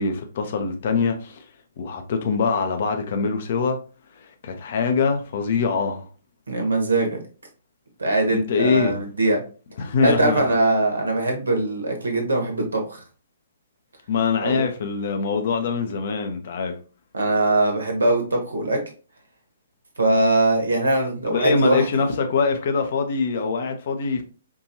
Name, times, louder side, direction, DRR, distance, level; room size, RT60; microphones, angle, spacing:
voice 1, 0.0-1.4 1.8-3.8 4.4-6.1 8.3-9.0 9.8-10.4 14.1-16.8 21.3-24.2, left 5 dB, 45° left, 0.8 m, -23 dB
voice 2, 6.5-7.2 8.0-9.4 10.0-13.0 14.4-14.6 17.1-18.8 20.0-22.1, right 2 dB, 70° right, 1.2 m, -21 dB
4.7 x 2.6 x 2.7 m
figure-of-eight pair, 125°, 0 cm